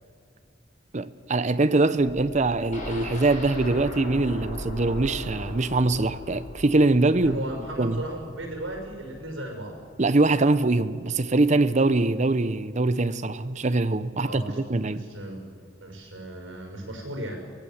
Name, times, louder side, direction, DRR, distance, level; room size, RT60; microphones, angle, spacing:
voice 1, 0.9-7.4 7.8-8.0 10.0-14.4 14.7-15.0, right 2 dB, 40° right, 0.7 m, -23 dB
sound 1, 2.0-9.4 9.8-10.0, equal, 20° left, 3.8 m, -44 dB
sound 2, 2.7-10.6 10.9-11.0 11.4-11.5, left 1 dB, 40° left, 4.3 m, -40 dB
voice 2, 7.2-9.8 14.2-17.4, right 1 dB, 85° right, 5.8 m, -36 dB
24.0 x 18.5 x 7.3 m
head